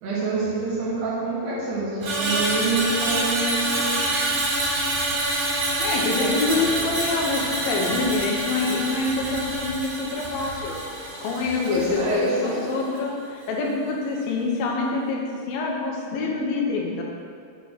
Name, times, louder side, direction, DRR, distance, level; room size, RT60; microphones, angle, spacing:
voice 1, 0.0-4.0 6.2-6.7 11.7-12.6, right 3 dB, 80° right, -8 dB, 3.5 m, -26 dB
Screech, 2.0-12.4 12.7-13.0, right 2 dB, 60° right, 1.4 m, -27 dB
sound 1, 3.2-12.1, equal, 30° right, 1.8 m, -43 dB
voice 2, 5.8-10.8 11.2-17.0, left 3 dB, 75° left, -1 dB, 2.8 m, -26 dB
8.4 x 4.5 x 5.9 m, 2.4 s
omnidirectional pair, 4.5 m